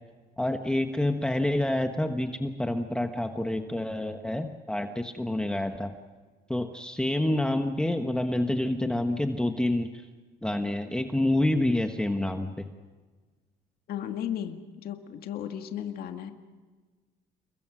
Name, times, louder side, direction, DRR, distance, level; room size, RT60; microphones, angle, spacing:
voice 1, 0.4-5.9 6.5-10.1 10.4-12.7, left 1 dB, 5° left, 6 dB, 1.3 m, -28 dB
voice 2, 13.9-16.3, left 9 dB, 65° left, 5 dB, 1.9 m, -35 dB
29.0 x 22.5 x 6.2 m, 1.4 s
cardioid pair, 110°, 17 cm